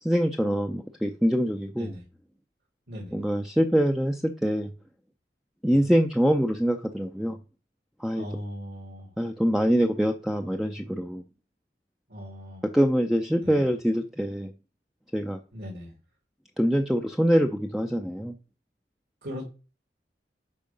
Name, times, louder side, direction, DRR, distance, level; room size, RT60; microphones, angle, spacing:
voice 1, 0.0-1.9 3.1-4.7 5.6-7.4 8.0-8.2 9.2-11.2 12.6-14.5 15.1-15.4 16.6-18.4, equal, ahead, 3 dB, 0.5 m, -24 dB
voice 2, 2.9-3.2 5.7-5.9 8.1-9.1 12.1-12.6 13.4-13.6 15.5-15.9 19.2-19.4, equal, 65° right, -2 dB, 3.0 m, -39 dB
8.7 x 5.6 x 5.3 m, 0.34 s
head